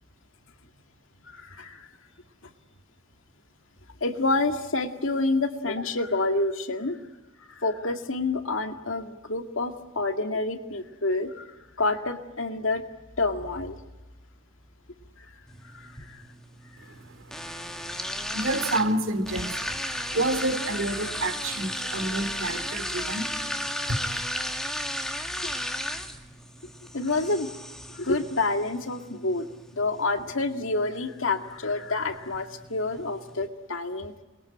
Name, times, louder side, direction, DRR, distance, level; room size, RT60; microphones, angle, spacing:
voice 1, 1.3-1.8 4.0-7.0 7.6-11.4 11.8-12.8 13.2-13.8 20.1-20.2 25.4-25.5 26.9-27.5 27.9-29.5 29.7-34.1, left 3 dB, 75° left, 6 dB, 2.2 m, -28 dB
sound 1, 15.5-33.5, equal, 5° left, 1.6 m, -35 dB
voice 2, 18.3-19.8 20.1-23.3 23.6-24.1, right 1 dB, 80° right, 10 dB, 2.8 m, -29 dB
27.5 x 22.0 x 8.8 m, 1.1 s
head